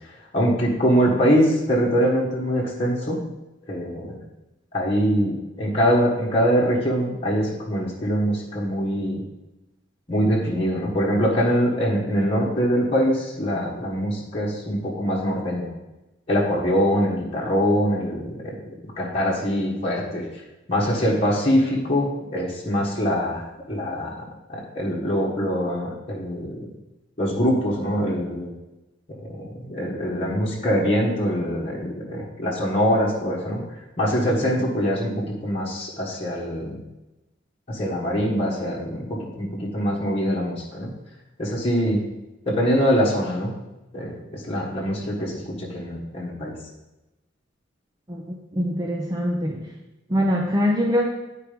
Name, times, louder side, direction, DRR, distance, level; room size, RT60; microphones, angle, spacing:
voice 1, 0.3-3.2 3.7-4.1 4.7-9.2 10.1-15.7 16.3-18.5 19.0-20.3 20.7-24.1 24.5-26.6 27.2-28.5 29.2-33.6 34.0-35.1 35.4-36.7 37.7-40.9 41.4-42.0 42.4-43.5 43.9-45.3 45.6-46.5, equal, 30° left, -6 dB, 1.5 m, -23 dB
voice 2, 48.1-49.7 50.1-51.1, equal, 20° right, 0 dB, 0.6 m, -23 dB
9.7 x 4.6 x 5.1 m, 1.0 s
head